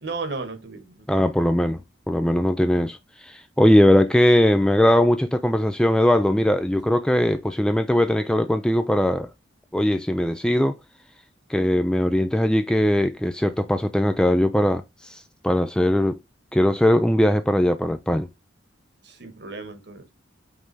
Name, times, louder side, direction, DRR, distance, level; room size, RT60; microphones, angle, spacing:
voice 1, 0.0-1.0 19.0-20.1, right 3 dB, 55° right, 1.4 m, -34 dB
voice 2, 1.1-1.8 2.1-9.3 9.7-10.8 11.5-16.2 16.5-18.3, left 1 dB, 5° left, 0.3 m, -20 dB
5.4 x 3.8 x 4.7 m
head